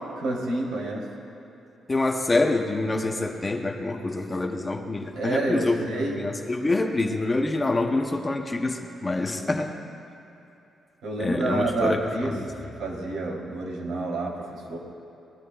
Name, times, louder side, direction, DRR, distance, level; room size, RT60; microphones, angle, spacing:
voice 1, 0.2-1.1 5.1-6.2 9.4-9.6 11.0-12.4 12.7-14.8, right 2 dB, 85° right, -2 dB, 3.1 m, -29 dB
voice 2, 1.9-9.8 11.2-12.0, left 2 dB, 15° left, 4 dB, 0.7 m, -26 dB
25.0 x 19.5 x 2.3 m, 2.9 s
wide cardioid pair, 180°, 0 cm